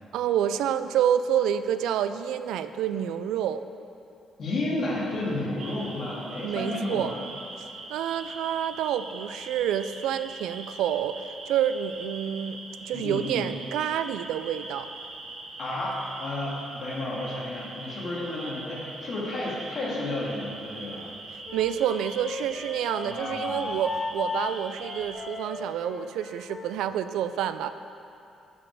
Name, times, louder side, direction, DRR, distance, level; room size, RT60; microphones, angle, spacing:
voice 1, 0.1-3.6 6.4-7.1 7.6-14.9 21.5-27.7, right 10 dB, 90° right, 11 dB, 0.3 m, -28 dB
voice 2, 4.4-7.2 12.9-13.5 15.6-21.1 23.0-23.7, left 2 dB, 55° left, -5 dB, 2.0 m, -32 dB
sound 1, 5.6-25.1, right 2 dB, 65° right, 1.2 m, -42 dB
Wind instrument woodwind instrument, 21.5-26.8, left 4 dB, 35° left, 0.6 m, -36 dB
11.0 x 4.9 x 4.7 m, 2.6 s
cardioid pair, 90°, 0 cm